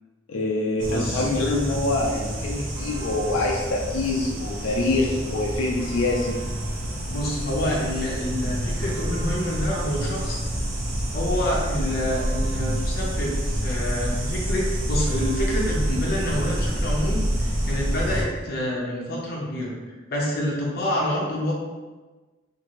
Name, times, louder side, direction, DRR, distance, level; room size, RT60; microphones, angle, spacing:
voice 1, 0.3-6.4, left 2 dB, 90° left, -2 dB, 0.4 m, -25 dB
sound 1, 0.8-18.2, right 1 dB, 75° right, 0.6 m, -28 dB
voice 2, 0.9-1.3 7.1-10.4 11.1-13.3 13.6-19.7 20.1-21.5, left 1 dB, 50° left, -3 dB, 0.6 m, -27 dB
2.6 x 2.5 x 3.0 m, 1.3 s
head